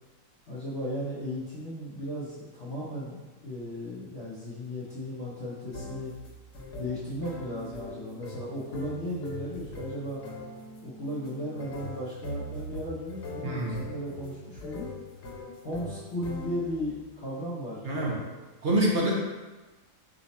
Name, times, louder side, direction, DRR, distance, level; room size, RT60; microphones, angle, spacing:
voice 1, 0.5-6.1 6.7-10.2 10.8-14.9 15.6-18.3 18.7-18.8, equal, 50° left, -10 dB, 1.0 m, -36 dB
sound 1, 5.7-16.9, left 1 dB, 85° left, 1.3 m, -41 dB
voice 2, 13.4-13.8 17.8-18.2 18.6-19.2, right 1 dB, 55° right, -4 dB, 0.7 m, -26 dB
4.9 x 2.3 x 4.0 m, 1.2 s
omnidirectional pair, 1.7 m